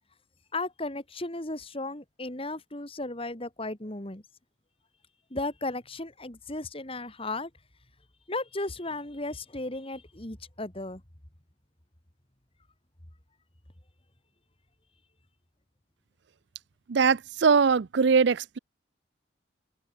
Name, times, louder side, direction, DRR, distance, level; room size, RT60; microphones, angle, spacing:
voice 1, 0.5-4.2 5.3-7.5 8.3-11.0, left 2 dB, 30° left, 2.4 m, -35 dB
voice 2, 16.9-18.6, right 5 dB, 60° right, 0.5 m, -22 dB
head